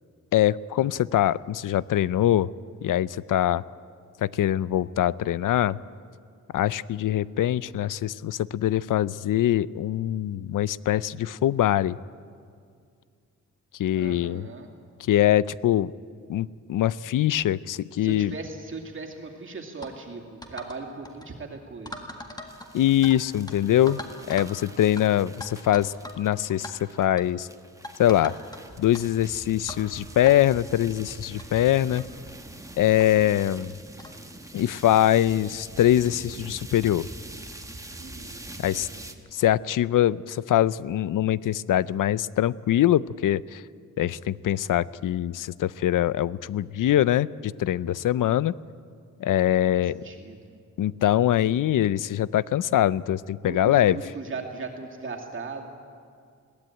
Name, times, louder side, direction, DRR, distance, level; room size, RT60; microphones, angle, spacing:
voice 1, 0.3-2.5 2.8-3.6 4.2-5.8 6.5-12.0 13.8-14.5 15.0-15.9 16.3-18.3 22.7-24.0 24.3-27.5 28.0-28.4 28.8-32.0 32.8-33.7 34.5-37.1 38.6-38.9 39.3-43.6 44.0-47.3 47.6-48.5 49.2-50.0 50.8-54.0, left 12 dB, 80° left, 19 dB, 0.5 m, -23 dB
voice 2, 14.0-14.7 18.0-22.0 38.0-38.4 38.7-39.1 49.7-50.5 53.4-55.6, right 4 dB, 40° right, 0 dB, 2.4 m, -38 dB
sound 1, 19.8-20.0 20.4-20.8 21.1-21.3 21.9-23.2 23.5-23.6 23.9-24.5 25.0-25.1 25.4-26.2 26.5-26.7 27.2-27.3 27.8-28.6 28.9-29.0 29.7-29.9 30.3-30.4 31.1-31.2 31.4-31.5 32.0-32.1 33.0-33.1 34.0-34.2, left 1 dB, 10° left, 1.7 m, -40 dB
sound 2, 22.5-39.2, right 2 dB, 10° right, 1.2 m, -44 dB
21.5 x 17.0 x 9.0 m, 2.2 s
wide cardioid pair, 160°, 32 cm